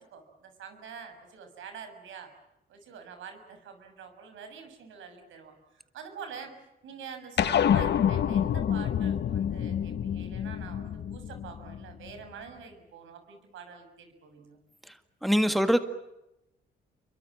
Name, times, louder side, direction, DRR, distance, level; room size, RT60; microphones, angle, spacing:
voice 1, 0.0-2.3 2.7-5.6 5.9-6.5 6.8-14.6, right 6 dB, 75° right, 7 dB, 6.7 m, -46 dB
sound 1, 7.4-12.1, left 9 dB, 60° left, 1.4 m, -27 dB
voice 2, 15.2-15.8, equal, ahead, 8 dB, 2.0 m, -23 dB
29.5 x 23.5 x 7.5 m, 0.90 s
cardioid pair, 90°, 20 cm